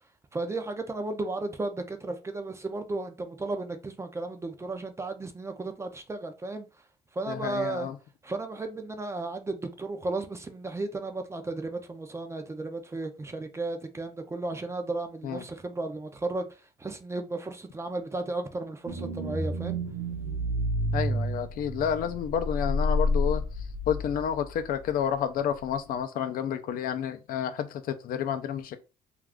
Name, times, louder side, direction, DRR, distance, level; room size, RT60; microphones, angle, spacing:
voice 1, 0.3-6.7 7.1-7.9 8.2-19.8, right 2 dB, 15° right, 0.4 m, -34 dB
voice 2, 7.3-7.9 15.2-15.4 20.9-23.4 23.9-28.8, left 8 dB, 60° left, 0.4 m, -30 dB
sound 1, 18.9-24.5 24.9-25.0, left 1 dB, 70° right, 0.8 m, -29 dB
2.4 x 2.3 x 3.4 m
cardioid pair, 110°, 17 cm